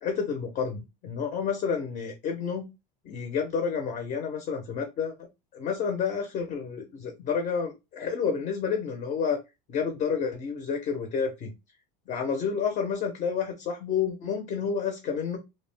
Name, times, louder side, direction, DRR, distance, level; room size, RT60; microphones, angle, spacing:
voice 1, 0.0-2.7 3.0-5.1 5.5-9.4 9.7-11.5 12.1-15.4, left 6 dB, 35° left, 5 dB, 0.5 m, -30 dB
2.4 x 2.1 x 3.1 m, 0.25 s
supercardioid pair, 140°, 21 cm